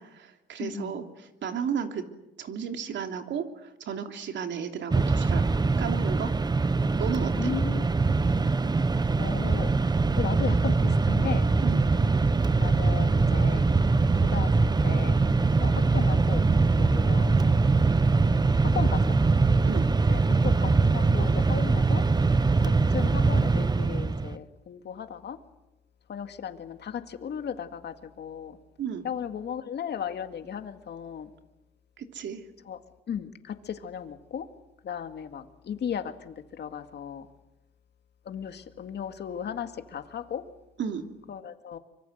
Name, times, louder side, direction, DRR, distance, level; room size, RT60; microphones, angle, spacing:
voice 1, 0.0-2.0 2.4-5.4 5.8-6.3 7.0-7.5 11.6-11.9 19.6-19.9 28.8-29.0 32.0-32.4 40.8-41.1, right 7 dB, 65° right, 5 dB, 3.0 m, -33 dB
voice 2, 0.6-0.9 7.3-8.5 9.2-9.7 10.2-11.5 12.6-13.7 14.2-15.2 15.6-16.5 16.8-17.6 18.6-19.2 20.1-22.0 22.6-25.4 26.1-28.6 29.0-31.3 32.7-32.8 33.1-34.5 34.8-37.3 38.3-40.4 41.3-41.8, left 8 dB, 60° left, 8 dB, 2.1 m, -36 dB
Mechanisms, 4.9-24.4, right 3 dB, 20° right, 0.9 m, -23 dB
25.0 x 24.0 x 8.0 m, 0.94 s
cardioid pair, 90°, 20 cm